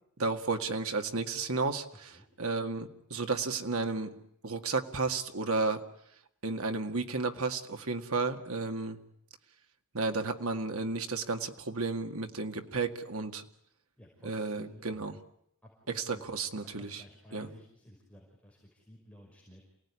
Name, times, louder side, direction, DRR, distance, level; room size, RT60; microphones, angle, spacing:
voice 1, 0.2-2.1 2.4-4.2 4.4-5.8 6.4-9.0 9.9-13.4 14.2-15.1 15.9-17.0 17.3-17.5, right 3 dB, 85° right, 6 dB, 2.0 m, -32 dB
voice 2, 14.0-15.1 15.6-16.2 16.8-19.6, equal, 5° left, -3 dB, 5.4 m, -53 dB
28.0 x 18.0 x 9.8 m, 0.76 s
head